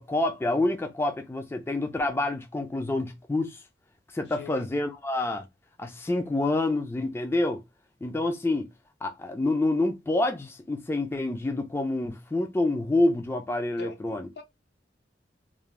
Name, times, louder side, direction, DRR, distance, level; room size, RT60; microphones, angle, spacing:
voice 1, 0.0-3.6 4.1-5.4 5.8-7.6 8.0-8.7 9.0-14.3, left 2 dB, 15° left, 0.3 m, -27 dB
voice 2, 4.3-4.7 13.8-14.4, left 3 dB, 65° left, 0.6 m, -42 dB
2.5 x 2.0 x 2.9 m
head